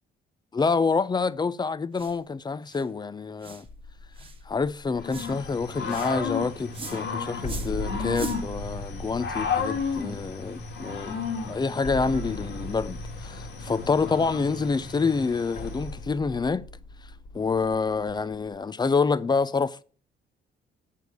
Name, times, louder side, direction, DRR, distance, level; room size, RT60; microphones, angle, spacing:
voice 1, 0.5-3.7 4.5-11.2 11.5-16.6 17.3-19.8, left 4 dB, 20° left, 0.5 m, -27 dB
sound 1, 1.9-2.2 2.7-2.9 3.4-3.7 4.2-4.4 5.1-5.3 5.9-6.1 6.7-7.0 7.4-7.8 8.1-8.4, right 4 dB, 25° right, 1.3 m, -39 dB
sound 2, 3.6-18.6, left 1 dB, 40° left, 1.4 m, -41 dB
Growling / Cricket, 5.0-15.9, left 5 dB, 65° left, 1.9 m, -33 dB
6.9 x 4.7 x 6.6 m
cardioid pair, 90°, 20 cm